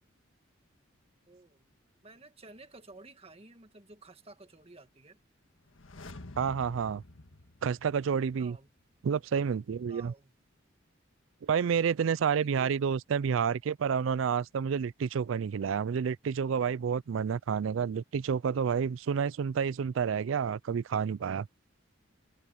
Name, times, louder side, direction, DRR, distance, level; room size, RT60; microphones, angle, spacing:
voice 1, 1.3-1.7 2.0-5.2 8.4-8.7 9.9-10.3 12.3-12.7, right 2 dB, 30° right, 1.7 m, -53 dB
sound 1, 5.6-8.5 8.8-8.9, left 2 dB, 80° left, 1.6 m, -49 dB
voice 2, 6.4-7.0 7.6-8.6 9.0-10.1 11.4-21.5, right 6 dB, 75° right, 0.4 m, -29 dB
head